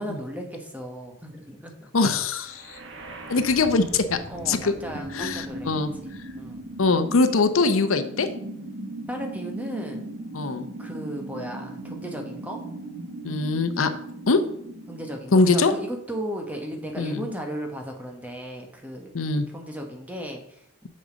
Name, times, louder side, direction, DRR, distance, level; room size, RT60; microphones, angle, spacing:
voice 1, 0.0-1.9 4.3-5.7 6.0-6.6 9.1-10.1 10.8-12.6 14.9-19.1 19.5-20.9, equal, 5° right, 2 dB, 1.2 m, -35 dB
voice 2, 1.9-2.8 3.3-4.2 4.5-4.7 5.1-5.9 6.8-8.3 10.3-10.7 13.2-13.9 14.3-14.5 15.3-15.7 17.0-17.3 19.1-19.5, left 3 dB, 80° left, 10 dB, 0.7 m, -22 dB
sound 1, 2.3-16.3, right 1 dB, 60° right, 1.3 m, -38 dB
6.6 x 6.4 x 5.1 m, 0.71 s
head